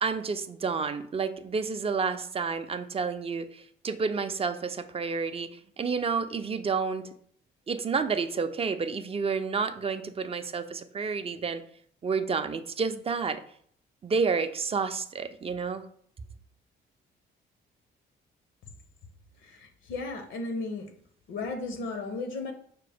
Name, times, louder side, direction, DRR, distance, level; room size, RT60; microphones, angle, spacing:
voice 1, 0.0-7.0 7.7-11.6 12.0-13.4 14.0-15.8, right 5 dB, 30° right, 9 dB, 0.4 m, -30 dB
voice 2, 19.4-20.9 21.3-22.5, left 3 dB, 75° left, 6 dB, 0.7 m, -35 dB
5.7 x 2.0 x 3.4 m, 0.62 s
cardioid pair, 90°, 20 cm